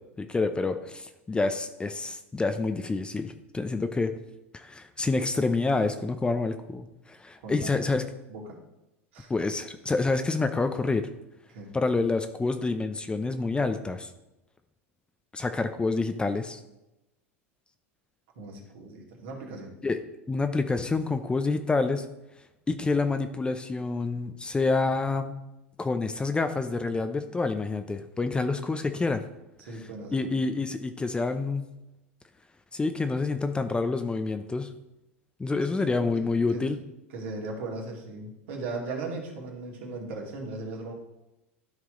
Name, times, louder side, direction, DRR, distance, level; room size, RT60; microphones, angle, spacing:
voice 1, 0.2-4.1 4.5-8.1 9.3-11.1 11.7-14.1 15.3-16.6 19.8-20.0 20.3-22.1 22.7-25.4 25.8-29.2 30.1-31.7 32.7-34.7 35.4-36.8, left 3 dB, 15° left, 8 dB, 0.6 m, -28 dB
voice 2, 7.4-7.7 8.3-8.6 9.1-9.3 11.5-11.7 18.4-19.8 29.6-30.6 35.7-36.1 36.5-36.6 37.1-40.9, right 3 dB, 65° right, -1 dB, 2.3 m, -38 dB
12.5 x 4.7 x 3.8 m, 0.93 s
hypercardioid pair, 90°, 7 cm